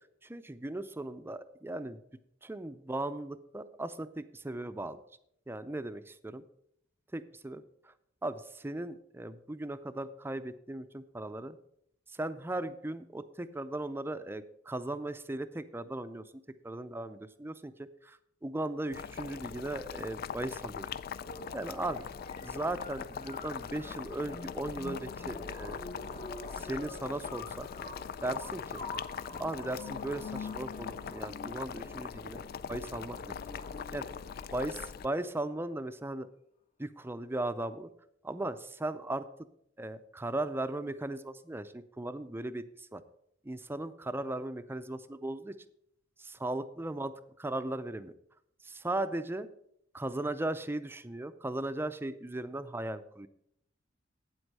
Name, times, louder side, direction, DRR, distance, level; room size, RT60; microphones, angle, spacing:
voice 1, 0.2-2.0 2.4-5.0 5.5-6.4 7.1-7.6 8.2-11.6 12.1-16.2 16.6-20.9 21.5-22.1 22.4-25.8 26.5-27.7 28.2-28.8 29.4-32.4 32.7-33.3 33.9-34.1 34.5-36.3 36.8-37.9 38.2-39.3 39.8-43.0 43.4-45.5 46.2-48.1 48.6-49.5 49.9-53.3, right 2 dB, 10° right, 11 dB, 0.5 m, -37 dB
Boiling, 18.9-35.1, left 7 dB, 55° left, 0.3 m, -41 dB
sound 1, 21.2-35.2, left 3 dB, 35° left, 0.9 m, -46 dB
9.0 x 7.9 x 5.4 m, 0.74 s
head